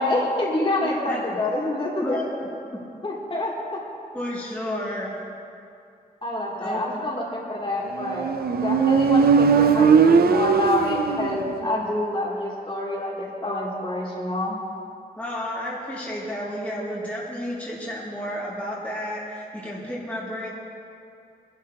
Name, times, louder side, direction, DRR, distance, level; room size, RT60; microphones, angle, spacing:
voice 1, 0.0-2.3 3.0-3.5 6.2-8.3 8.6-14.6, left 1 dB, 35° left, -5 dB, 2.9 m, -27 dB
voice 2, 0.8-1.2 2.0-2.4 2.7-2.8 4.1-5.2 6.6-6.8 15.2-20.5, equal, 10° left, -8 dB, 2.3 m, -32 dB
Motorcycle, 8.0-11.7, right 5 dB, 85° right, 0.5 m, -19 dB
24.5 x 11.5 x 2.9 m, 2.5 s
wide cardioid pair, 120°, 15 cm